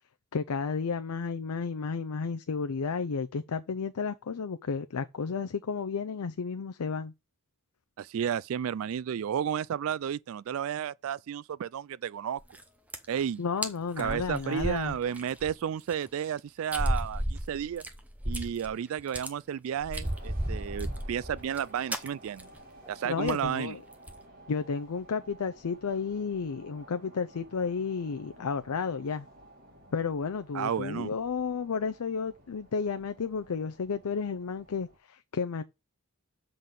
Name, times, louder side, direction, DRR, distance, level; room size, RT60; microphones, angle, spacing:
voice 1, 0.3-7.1 13.4-15.0 23.0-23.8 24.5-29.3 29.9-35.6, left 5 dB, 85° left, 0.5 m, -32 dB
voice 2, 8.0-12.4 13.1-13.4 14.0-17.8 18.3-22.5 22.9-23.8 30.5-31.1, right 8 dB, 65° right, 0.3 m, -32 dB
sound 1, 12.4-12.6 12.9-13.2 13.6-13.7 14.0-15.5 15.9-16.0 16.7-18.7 19.0-19.3 19.8-21.6 21.9-22.1 22.4-22.6 22.8-22.9 23.3-23.5 23.9-24.2, equal, 5° right, 0.8 m, -33 dB
sound 2, 20.0-35.0, right 1 dB, 40° right, 2.6 m, -54 dB
7.4 x 3.9 x 6.6 m
head